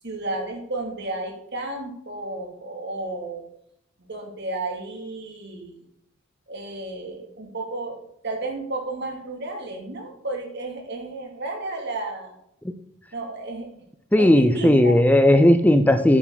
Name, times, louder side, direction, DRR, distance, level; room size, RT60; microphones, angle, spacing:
voice 1, 0.0-3.4 4.0-5.8 6.5-8.0 8.2-12.3 13.1-13.7 14.2-15.0, right 2 dB, 55° right, 2 dB, 2.6 m, -32 dB
voice 2, 14.1-16.2, left 1 dB, 10° left, 9 dB, 0.5 m, -16 dB
9.5 x 9.1 x 4.0 m, 0.75 s
head